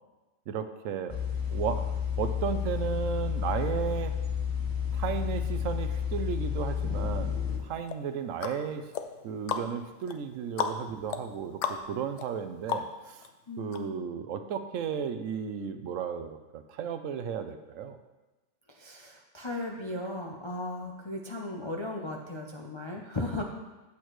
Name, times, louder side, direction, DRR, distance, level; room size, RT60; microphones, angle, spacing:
voice 1, 0.5-1.2 1.5-1.9 2.2-4.1 4.9-8.9 9.2-13.2 13.6-18.0, right 7 dB, 75° right, 9 dB, 0.9 m, -34 dB
sound 1, 1.1-7.6, left 7 dB, 20° left, 0.8 m, -31 dB
sound 2, 7.9-13.3 13.7-13.8, left 7 dB, 70° left, 0.9 m, -36 dB
voice 2, 13.5-14.0 18.7-23.4, left 2 dB, 40° left, 0 dB, 0.4 m, -36 dB
8.5 x 8.2 x 3.1 m, 1.1 s
omnidirectional pair, 1.4 m